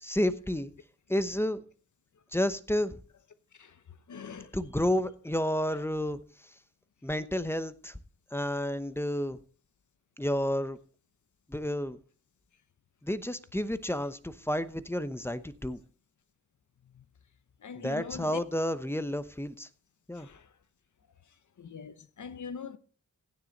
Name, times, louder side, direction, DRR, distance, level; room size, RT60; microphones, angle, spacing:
voice 1, 0.0-0.7 1.1-1.6 2.3-3.0 4.5-6.2 7.0-8.0 8.3-9.4 10.2-10.8 11.5-12.0 13.0-15.8 17.7-19.7 20.1-20.3, left 1 dB, 5° left, 0.8 m, -31 dB
voice 2, 4.1-4.5 16.9-17.0 17.6-18.4 20.1-20.5 21.6-22.8, left 6 dB, 65° left, 0.9 m, -42 dB
16.0 x 7.6 x 4.0 m
wide cardioid pair, 95°, 32 cm